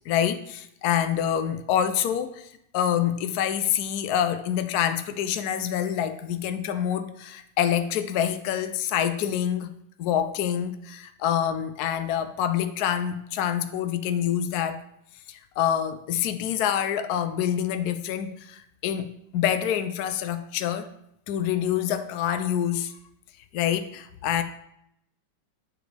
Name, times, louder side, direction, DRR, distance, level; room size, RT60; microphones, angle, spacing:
voice 1, 0.1-9.7 10.0-14.8 15.3-19.1 19.3-20.9 21.3-22.9 23.5-24.4, left 9 dB, 90° left, 9 dB, 0.8 m, -26 dB
9.0 x 7.1 x 3.3 m, 0.77 s
omnidirectional pair, 2.3 m